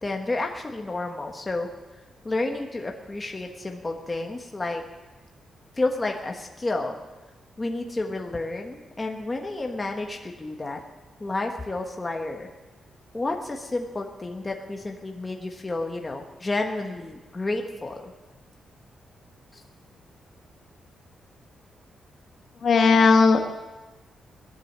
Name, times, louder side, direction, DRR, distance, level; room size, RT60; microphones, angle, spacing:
voice 1, 0.0-1.7 2.2-4.8 5.7-6.9 7.6-10.8 11.2-12.5 13.1-18.1, left 2 dB, 15° left, 2 dB, 1.2 m, -30 dB
voice 2, 22.6-23.4, left 4 dB, 45° left, 5 dB, 1.3 m, -17 dB
17.0 x 10.5 x 7.3 m, 1.2 s
wide cardioid pair, 170°, 0 cm